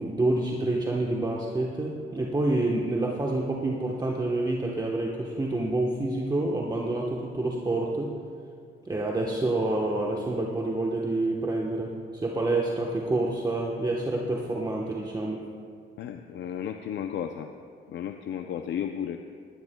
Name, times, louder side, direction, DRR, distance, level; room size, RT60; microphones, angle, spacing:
voice 1, 0.0-8.1 8.8-15.4, right 2 dB, 20° right, -2 dB, 1.1 m, -28 dB
voice 2, 16.0-17.5 17.9-19.2, left 9 dB, 65° left, 6 dB, 0.5 m, -33 dB
19.5 x 10.5 x 2.2 m, 2.2 s
cardioid pair, 90°, 20 cm